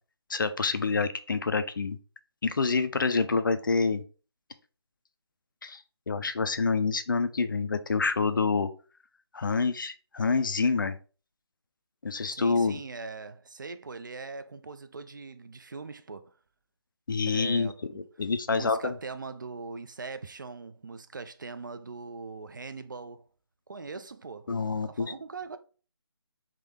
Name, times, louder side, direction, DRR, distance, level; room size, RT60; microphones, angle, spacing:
voice 1, 0.3-2.0 2.4-4.0 5.6-8.7 9.3-11.0 12.0-12.8 17.1-18.9 24.5-25.1, left 4 dB, 50° left, 0.4 m, -27 dB
voice 2, 12.3-16.4 17.3-17.8 18.5-23.3 23.7-24.5 24.8-25.6, right 4 dB, 45° right, 0.4 m, -41 dB
3.6 x 2.8 x 3.4 m
figure-of-eight pair, 165°, 14 cm